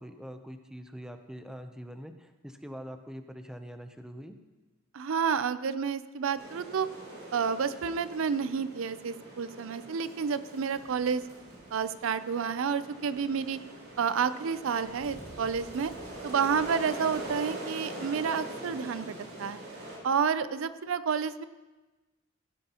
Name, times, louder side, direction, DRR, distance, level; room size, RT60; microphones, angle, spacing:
voice 1, 0.0-4.4, equal, 5° right, 7 dB, 0.6 m, -44 dB
voice 2, 4.9-6.9 7.3-11.2 11.7-13.6 14.0-15.9 16.2-19.6 20.0-21.4, right 6 dB, 65° right, 14 dB, 0.4 m, -30 dB
sound 1, 6.3-20.0, right 1 dB, 90° right, 3.9 m, -43 dB
16.0 x 11.0 x 2.9 m, 1.2 s
head